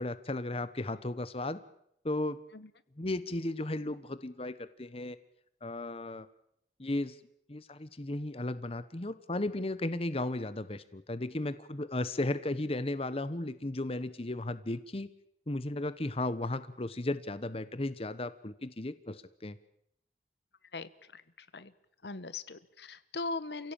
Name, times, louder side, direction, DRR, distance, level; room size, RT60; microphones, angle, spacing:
voice 1, 0.0-1.6 2.0-2.4 3.0-5.2 5.6-6.3 6.8-7.2 7.5-15.1 15.5-19.6, left 2 dB, 35° left, 14 dB, 1.0 m, -35 dB
voice 2, 20.7-21.2 21.5-21.7 22.0-23.7, left 3 dB, 70° left, 15 dB, 1.1 m, -39 dB
29.0 x 16.5 x 8.9 m, 0.76 s
head